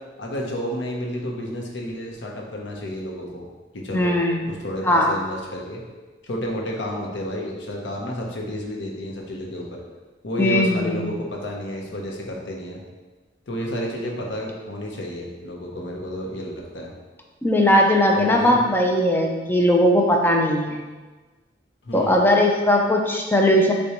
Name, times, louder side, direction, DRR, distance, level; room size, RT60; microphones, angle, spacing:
voice 1, 0.2-3.5 3.7-4.2 4.4-5.8 6.2-9.8 10.2-12.8 13.5-16.9 18.1-18.6 21.8-22.2, equal, 80° left, 0 dB, 0.7 m, -31 dB
voice 2, 3.9-4.4 4.8-5.1 10.4-11.0 17.4-20.8 21.9-23.7, left 1 dB, 10° left, 1 dB, 0.4 m, -19 dB
6.4 x 2.2 x 2.9 m, 1.3 s
head